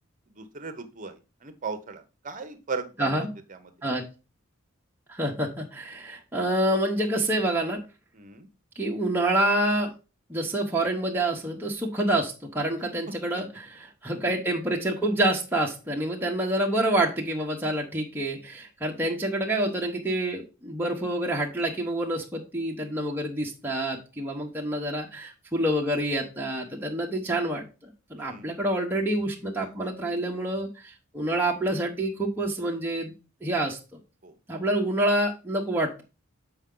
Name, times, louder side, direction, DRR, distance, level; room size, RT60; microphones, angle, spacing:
voice 1, 0.3-3.7 8.1-8.5 19.0-19.2 28.2-28.5 34.2-34.3, right 4 dB, 40° right, 9 dB, 0.9 m, -38 dB
voice 2, 3.0-3.3 3.8-4.0 5.1-7.8 8.8-9.9 10.3-33.1 33.4-33.8 34.5-36.0, right 1 dB, 10° right, -2 dB, 1.0 m, -27 dB
7.1 x 4.7 x 3.8 m, 0.30 s
head